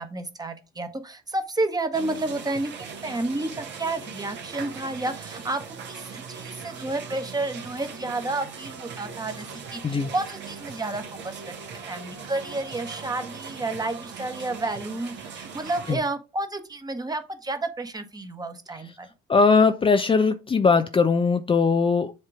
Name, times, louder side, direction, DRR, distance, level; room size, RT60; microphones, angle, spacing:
voice 1, 0.0-2.7 3.0-5.6 5.9-11.4 11.9-19.1, right 2 dB, 20° right, 1.3 m, -31 dB
sound 1, 1.9-16.0, right 6 dB, 60° right, 1.6 m, -40 dB
voice 2, 19.3-22.1, left 4 dB, 25° left, 0.6 m, -20 dB
7.5 x 2.9 x 4.9 m
hypercardioid pair, 65°, 21 cm